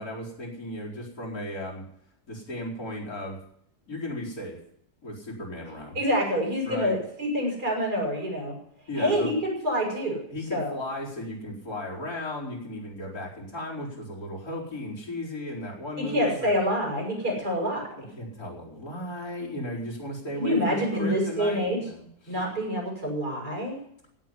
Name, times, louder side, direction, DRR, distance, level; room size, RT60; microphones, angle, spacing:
voice 1, 0.0-1.8 2.3-3.4 3.9-4.6 5.0-6.0 6.7-7.0 8.9-9.4 10.3-16.5 18.0-22.4, left 1 dB, 60° left, -4 dB, 4.9 m, -35 dB
voice 2, 6.0-8.6 9.0-10.2 10.5-10.8 16.0-17.8 20.4-21.8 22.3-23.8, equal, 70° right, -2 dB, 7.4 m, -27 dB
16.5 x 7.1 x 9.9 m, 0.69 s
omnidirectional pair, 1.7 m